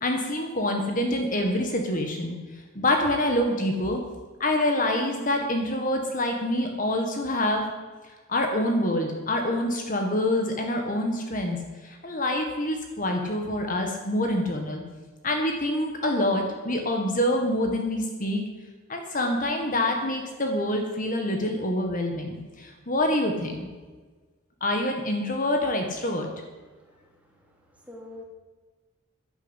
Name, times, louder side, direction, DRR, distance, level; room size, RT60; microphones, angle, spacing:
voice 1, 0.0-2.4 2.7-4.0 4.4-7.7 8.3-11.6 11.8-14.8 15.2-18.4 18.9-23.7 24.6-26.3, left 1 dB, 40° left, 3 dB, 1.7 m, -26 dB
voice 2, 26.7-27.6 27.8-28.2, left 2 dB, 5° right, -2 dB, 2.8 m, -47 dB
11.0 x 11.0 x 8.1 m, 1.3 s
head